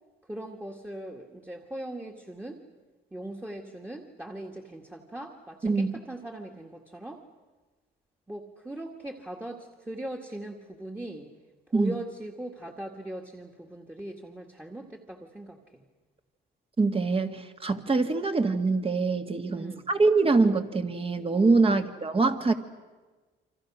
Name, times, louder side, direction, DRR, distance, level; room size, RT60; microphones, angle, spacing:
voice 1, 0.3-2.6 3.1-7.2 8.3-11.3 11.7-15.8 17.8-18.0 19.5-19.9 21.6-21.8, right 1 dB, 10° right, 2 dB, 2.0 m, -40 dB
voice 2, 5.6-6.0 11.7-11.9 16.8-22.5, right 3 dB, 30° right, 7 dB, 2.0 m, -24 dB
28.5 x 25.5 x 6.3 m, 1.3 s
cardioid pair, 90°, 20 cm